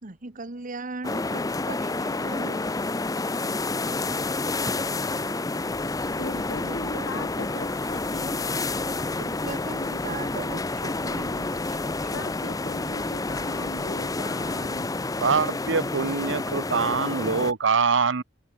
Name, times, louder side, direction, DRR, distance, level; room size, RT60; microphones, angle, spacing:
voice 1, 0.0-2.6 6.6-7.5 9.2-11.8, right 3 dB, 40° right, 1.3 m, -38 dB
sound 1, 1.0-17.5, left 3 dB, 20° left, 0.6 m, -29 dB
sound 2, 5.7-14.2, left 1 dB, 35° left, 4.0 m, -47 dB
voice 2, 6.0-8.4 12.1-14.9, left 3 dB, 80° left, 1.4 m, -39 dB
sound 3, 7.1-14.4, right 1 dB, 10° right, 3.8 m, -51 dB
voice 3, 15.2-18.2, right 5 dB, 65° right, 0.9 m, -24 dB
open air
head